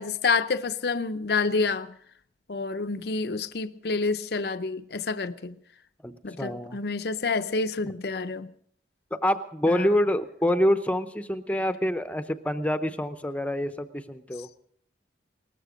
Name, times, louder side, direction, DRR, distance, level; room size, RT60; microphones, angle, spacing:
voice 1, 0.0-1.9 2.5-5.6 6.2-8.5 9.7-9.9, left 4 dB, 60° left, 0.6 m, -28 dB
voice 2, 6.4-6.8 7.8-7.9 9.1-14.5, left 1 dB, 10° left, 0.7 m, -26 dB
19.5 x 14.0 x 5.1 m
head